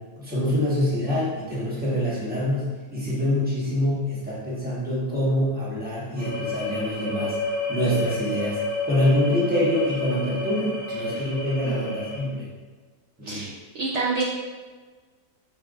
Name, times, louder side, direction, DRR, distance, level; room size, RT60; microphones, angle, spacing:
voice 1, 0.2-7.4 7.7-8.6 8.8-12.5 13.2-13.5, left 1 dB, 5° right, -8 dB, 1.0 m, -25 dB
sound 1, 6.2-12.2, left 2 dB, 35° right, 1.1 m, -30 dB
voice 2, 13.3-14.2, right 4 dB, 80° right, -4 dB, 0.6 m, -28 dB
5.6 x 3.3 x 2.5 m, 1.4 s
omnidirectional pair, 1.8 m